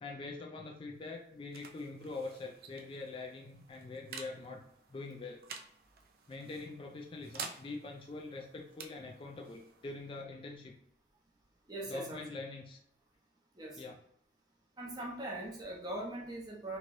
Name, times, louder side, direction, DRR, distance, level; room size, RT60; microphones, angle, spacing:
voice 1, 0.0-4.6 4.9-5.4 6.3-10.7 11.9-12.8 13.8-14.0, left 3 dB, 30° left, 1 dB, 0.3 m, -44 dB
sound 1, 0.8-12.1, right 5 dB, 55° right, 0.4 m, -51 dB
voice 2, 11.7-12.2 13.5-13.8 14.8-16.8, right 1 dB, 25° right, -2 dB, 0.7 m, -41 dB
3.0 x 2.9 x 2.5 m, 0.71 s
head